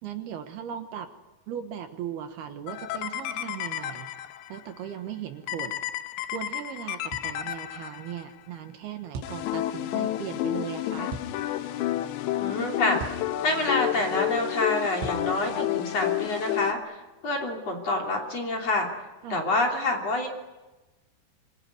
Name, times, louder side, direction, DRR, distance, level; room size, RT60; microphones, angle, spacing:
voice 1, 0.0-1.1 1.5-4.1 4.5-5.8 6.3-11.1 19.2-19.5, right 9 dB, 70° right, 7 dB, 3.0 m, -37 dB
sound 1, 2.7-4.6 5.5-8.3 9.2-16.7, left 13 dB, 85° left, 3.3 m, -31 dB
sound 2, 7.1-7.4 9.1-9.4 11.1-11.3 13.0-13.3 15.0-15.3, right 4 dB, 90° right, 4.4 m, -37 dB
voice 2, 12.4-13.0 13.4-18.9 19.3-20.3, left 2 dB, 40° left, 1 dB, 3.7 m, -27 dB
25.5 x 21.5 x 9.7 m, 1.1 s
omnidirectional pair, 5.1 m